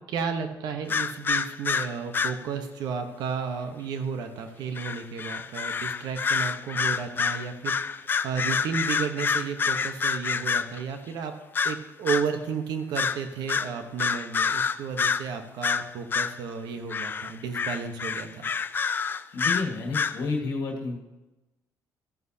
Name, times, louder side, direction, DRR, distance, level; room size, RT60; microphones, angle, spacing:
voice 1, 0.1-11.3 11.6-18.5, right 6 dB, 80° right, 7 dB, 1.1 m, -33 dB
sound 1, 0.9-2.4 4.8-10.8 11.6-12.3 13.0-13.2 13.5-15.3 15.6-16.4 16.9-20.2, left 6 dB, 30° left, 0.4 m, -27 dB
voice 2, 19.3-21.0, left 4 dB, 65° left, 1 dB, 1.6 m, -30 dB
13.5 x 9.5 x 2.8 m, 1.0 s
cardioid pair, 130°, 7 cm